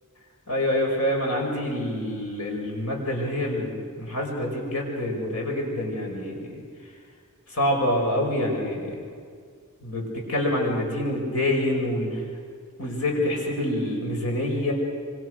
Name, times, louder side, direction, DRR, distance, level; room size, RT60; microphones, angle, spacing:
voice 1, 0.5-6.6 7.5-8.9 9.8-12.2 12.8-14.7, left 1 dB, 90° left, 0 dB, 6.4 m, -26 dB
26.5 x 25.5 x 6.5 m, 2.1 s
head